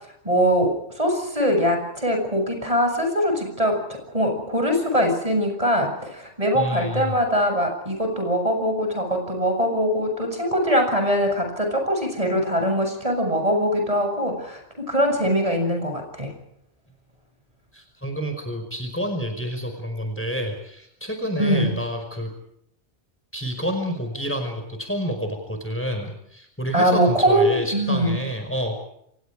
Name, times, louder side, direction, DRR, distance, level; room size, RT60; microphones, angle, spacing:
voice 1, 0.2-16.3 21.4-21.7 26.7-28.2, equal, 30° right, 4 dB, 7.3 m, -22 dB
voice 2, 6.5-7.2 17.7-22.3 23.3-28.8, equal, 10° left, 5 dB, 5.1 m, -29 dB
29.5 x 27.5 x 5.0 m, 0.74 s
omnidirectional pair, 1.2 m